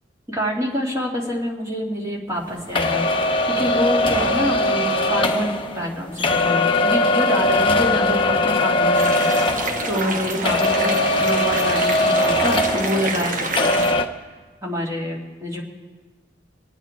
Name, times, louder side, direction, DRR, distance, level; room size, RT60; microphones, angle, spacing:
voice 1, 0.3-3.1 3.5-13.9 14.6-15.6, equal, 15° right, -3 dB, 2.5 m, -26 dB
sound 1, 2.8-10.2 10.5-13.3 13.5-14.0, left 2 dB, 25° left, 0.8 m, -20 dB
sound 2, 8.9-13.9, right 2 dB, 45° right, 1.2 m, -27 dB
24.5 x 8.9 x 4.6 m, 1.4 s
head